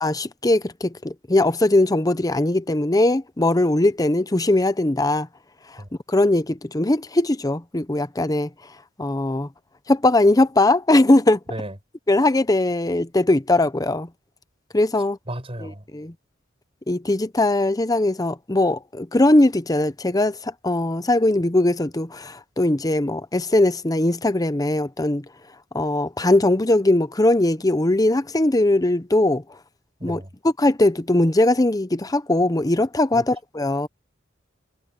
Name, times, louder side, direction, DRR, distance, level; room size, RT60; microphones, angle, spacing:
voice 1, 0.0-5.3 6.1-8.5 9.0-9.5 9.9-11.4 12.1-14.1 14.7-15.2 15.6-16.1 16.9-25.2 25.7-29.4 30.0-30.2 30.6-33.9, left 2 dB, 20° left, 0.8 m, -20 dB
voice 2, 15.3-15.8 30.0-30.3 33.1-33.2, right 1 dB, 30° right, 5.3 m, -33 dB
head